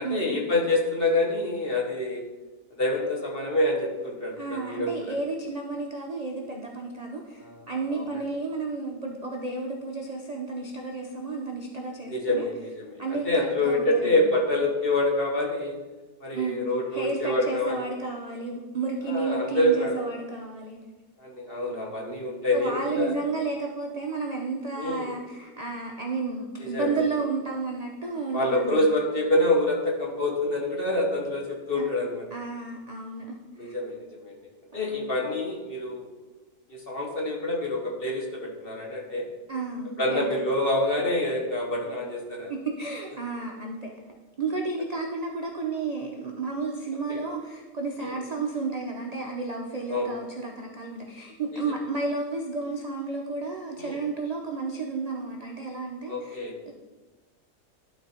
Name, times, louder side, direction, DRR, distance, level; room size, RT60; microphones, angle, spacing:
voice 1, 0.0-2.2 2.8-4.9 7.4-7.7 7.9-8.2 12.1-15.8 16.2-17.8 19.1-20.0 21.2-23.1 24.8-25.1 26.6-27.0 28.3-32.2 33.6-34.4 34.7-36.1 36.7-39.2 40.0-42.5 47.1-47.2 48.0-48.1 49.9-50.1 51.5-51.6 53.8-54.0 56.1-56.6, left 1 dB, 40° left, 0 dB, 1.3 m, -26 dB
voice 2, 4.4-12.5 13.0-14.1 16.3-16.6 16.9-20.8 22.5-28.8 31.8-31.9 32.3-33.7 34.7-35.1 39.5-40.2 42.5-43.9 44.4-56.4 56.7-56.8, right 3 dB, 60° right, 0 dB, 0.4 m, -32 dB
11.5 x 4.1 x 4.3 m, 1.2 s
omnidirectional pair, 1.8 m